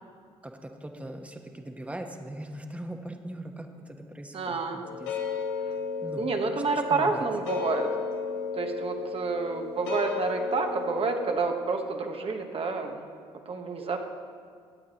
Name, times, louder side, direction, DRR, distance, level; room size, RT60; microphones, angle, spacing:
voice 1, 0.4-5.1 6.0-6.3 6.9-7.2, right 1 dB, 10° right, 4 dB, 1.2 m, -40 dB
voice 2, 4.3-4.8 6.2-7.9 8.6-13.0 13.5-14.1, right 4 dB, 45° right, 4 dB, 1.2 m, -29 dB
sound 1, 4.8-11.4, left 5 dB, 85° left, 1.3 m, -34 dB
17.0 x 8.8 x 3.0 m, 2.1 s
hypercardioid pair, 55°, 13 cm